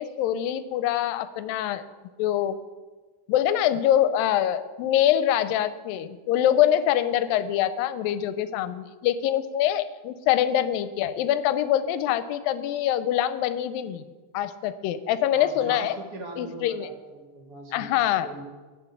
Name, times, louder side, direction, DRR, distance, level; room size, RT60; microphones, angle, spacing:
voice 1, 0.0-1.8 2.2-2.6 3.3-14.0 14.3-16.0 16.4-16.9 17.7-18.4, left 11 dB, 80° left, 14 dB, 2.2 m, -24 dB
voice 2, 15.3-17.9 18.2-18.4, right 2 dB, 65° right, 2 dB, 1.4 m, -41 dB
10.0 x 6.2 x 8.2 m, 1.3 s
omnidirectional pair, 4.1 m